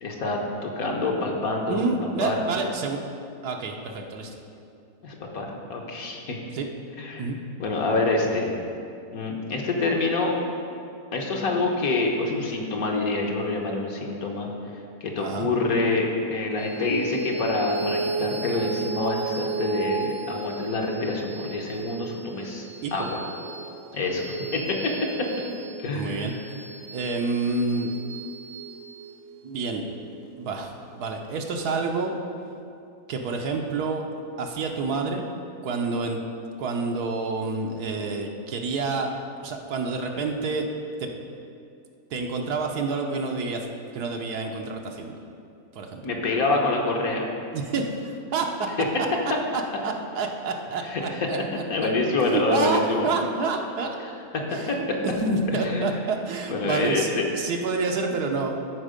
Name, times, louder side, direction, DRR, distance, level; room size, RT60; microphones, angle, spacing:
voice 1, 0.0-2.3 5.0-6.4 7.0-7.3 7.6-8.5 9.1-10.3 11.1-14.5 15.0-22.6 22.9-23.2 23.9-24.2 24.5-24.9 25.8-26.4 46.0-47.3 50.8-51.0 51.7-53.1 54.3-54.8 55.6-55.9 56.5-57.2, left 3 dB, 65° left, 0 dB, 1.4 m, -26 dB
voice 2, 1.7-3.0 3.4-4.3 6.5-6.7 7.2-7.4 15.2-15.5 22.8-23.1 25.9-26.3 26.9-27.9 29.4-29.8 30.4-32.1 33.1-34.1 34.4-35.2 35.6-36.2 36.6-39.1 39.4-40.7 41.0-41.1 42.1-43.7 43.9-45.2 45.7-46.0 47.5-48.7 49.5-51.4 51.8-51.9 52.2-54.0 54.5-58.6, right 4 dB, 75° right, 2 dB, 1.3 m, -28 dB
sound 1, 16.6-31.3, right 5 dB, 60° right, 1.0 m, -35 dB
13.0 x 4.4 x 5.0 m, 2.5 s
omnidirectional pair, 1.7 m